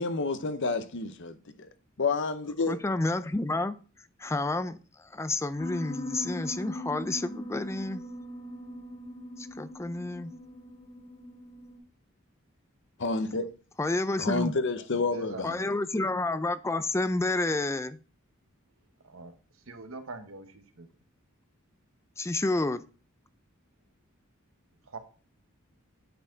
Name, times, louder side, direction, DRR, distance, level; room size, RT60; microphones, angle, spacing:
voice 1, 0.0-1.4 2.0-2.8 13.0-13.5 14.2-15.6, left 3 dB, 60° left, 0.8 m, -29 dB
voice 2, 2.7-3.8 4.2-8.0 9.4-10.3 13.8-14.5 15.4-18.0 22.2-22.8, left 2 dB, 15° left, 0.4 m, -30 dB
Piano, 5.6-11.8, left 1 dB, 35° left, 2.8 m, -40 dB
voice 3, 15.0-15.7 19.0-19.3 19.7-20.9 24.9-25.0, right 2 dB, 85° right, 1.2 m, -43 dB
9.0 x 4.6 x 3.9 m
head